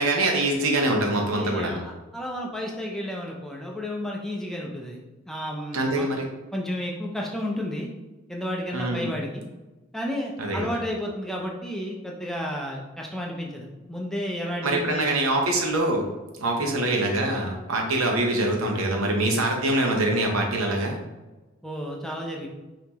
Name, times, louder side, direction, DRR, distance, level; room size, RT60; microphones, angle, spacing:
voice 1, 0.0-1.8 5.7-6.3 8.7-9.0 10.4-10.8 14.6-16.1 16.4-21.0, right 1 dB, 85° right, 1 dB, 0.9 m, -24 dB
voice 2, 1.3-5.0 5.3-6.1 6.5-7.9 8.3-9.4 9.9-15.2 16.6-16.8 21.6-22.5, equal, ahead, -1 dB, 0.4 m, -32 dB
5.5 x 2.8 x 3.0 m, 1.1 s
head